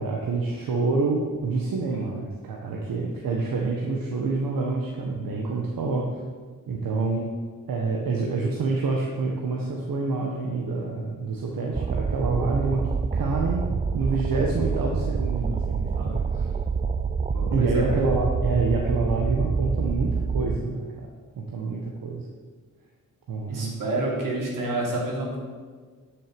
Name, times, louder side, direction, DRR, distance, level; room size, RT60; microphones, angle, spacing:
voice 1, 0.0-6.2 6.7-7.3 7.7-12.8 13.1-13.6 13.9-16.5 17.5-20.9 21.4-22.2 23.3-23.9, right 3 dB, 85° right, -1 dB, 1.5 m, -27 dB
sound 1, 11.7-20.6, right 5 dB, 25° right, 0.4 m, -26 dB
voice 2, 17.3-18.0 23.5-25.4, right 2 dB, 70° right, -3 dB, 3.7 m, -29 dB
10.5 x 6.8 x 7.9 m, 1.5 s
wide cardioid pair, 125°, 33 cm